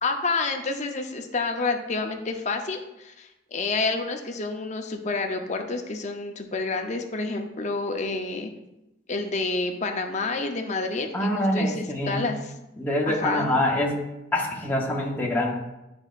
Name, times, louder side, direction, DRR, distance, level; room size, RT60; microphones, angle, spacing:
voice 1, 0.0-8.5 9.1-12.5 13.1-13.5, left 3 dB, 40° left, 4 dB, 0.7 m, -29 dB
voice 2, 11.1-12.2 12.8-14.0 14.3-15.5, left 1 dB, 10° left, -2 dB, 0.9 m, -25 dB
9.7 x 5.2 x 2.5 m, 0.93 s
head